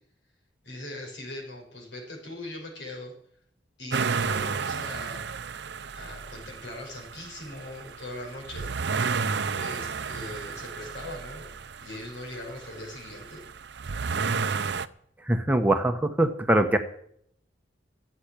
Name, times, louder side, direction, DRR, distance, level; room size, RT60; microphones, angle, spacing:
voice 1, 0.6-3.1 3.8-5.3 5.9-8.7 9.5-11.5 11.8-13.4, left 1 dB, 70° left, 0 dB, 6.1 m, -40 dB
sound 1, 3.9-14.9, right 5 dB, 65° right, 0.6 m, -32 dB
voice 2, 15.3-16.8, right 1 dB, 10° right, 6 dB, 1.0 m, -22 dB
15.0 x 8.1 x 8.8 m, 0.65 s
head